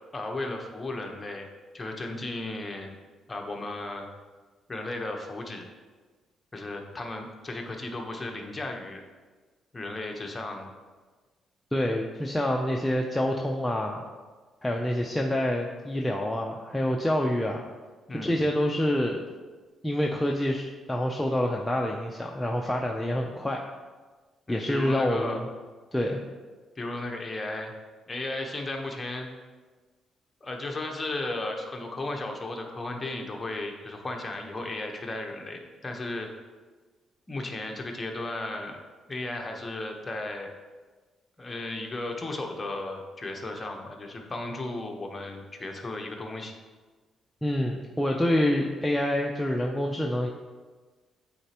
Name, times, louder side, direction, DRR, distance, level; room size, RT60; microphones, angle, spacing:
voice 1, 0.1-1.5 1.7-2.9 3.3-4.1 4.7-5.7 6.5-9.0 9.7-10.7 18.1-18.4 24.5-25.4 26.8-27.7 28.1-29.3 30.4-36.3 37.3-38.8 39.1-40.5 41.4-46.5, left 2 dB, 25° left, 2 dB, 0.9 m, -35 dB
voice 2, 11.7-14.0 14.6-17.6 18.1-19.2 19.8-23.6 24.5-25.5 25.9-26.2 47.4-50.3, left 1 dB, 10° left, 0 dB, 0.5 m, -27 dB
8.8 x 4.1 x 2.9 m, 1.4 s
cardioid pair, 90°, 0 cm